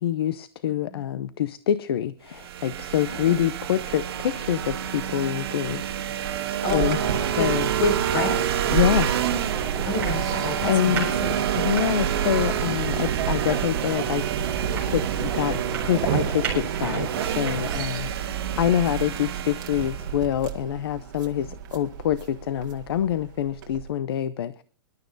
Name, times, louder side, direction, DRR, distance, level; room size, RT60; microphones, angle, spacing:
voice 1, 0.0-5.8 6.7-7.0 7.4-7.7 8.7-9.1 10.7-11.1 11.5-14.2 14.9-18.1 18.6-24.6, left 10 dB, 70° left, 16 dB, 0.6 m, -26 dB
sound 1, 2.3-20.2, right 9 dB, 70° right, 1.8 m, -29 dB
voice 2, 3.1-3.4 6.6-7.5 7.8-8.4 9.8-11.5 17.8-18.2 21.4-21.5, left 2 dB, 50° left, 5 dB, 5.5 m, -29 dB
sound 2, 6.7-23.9, right 8 dB, 50° right, 2.0 m, -31 dB
sound 3, 8.5-17.8, right 5 dB, 15° right, 4.3 m, -34 dB
24.5 x 12.0 x 2.6 m, 0.42 s
supercardioid pair, 175°, 13 cm